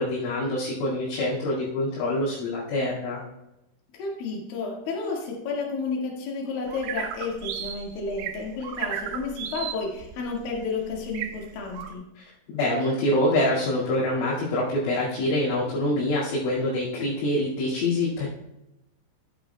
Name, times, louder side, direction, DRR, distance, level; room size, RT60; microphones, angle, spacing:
voice 1, 0.0-3.2 12.5-18.3, left 1 dB, 75° left, -9 dB, 4.7 m, -25 dB
voice 2, 3.9-12.0, left 4 dB, 55° left, -2 dB, 3.0 m, -31 dB
sound 1, 6.7-11.9, right 9 dB, 80° right, 2.8 m, -35 dB
13.5 x 9.2 x 2.3 m, 0.91 s
omnidirectional pair, 5.8 m